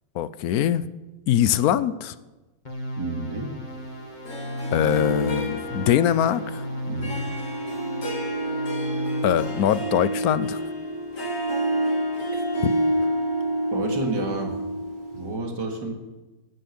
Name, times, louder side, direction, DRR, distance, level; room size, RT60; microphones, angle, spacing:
voice 1, 0.1-0.8 1.3-2.1 4.7-6.6 9.2-10.6 12.6-12.7, left 10 dB, 70° left, 16 dB, 1.0 m, -22 dB
sound 1, 2.7-10.2, equal, 25° left, 2.2 m, -34 dB
voice 2, 3.0-3.5 6.9-7.2 12.3-12.4 13.7-14.5 15.1-15.9, right 2 dB, 85° right, 3 dB, 2.8 m, -30 dB
Harp, 4.3-15.4, right 1 dB, 50° left, 2.5 m, -28 dB
12.5 x 10.5 x 9.4 m, 1.2 s
omnidirectional pair, 1.8 m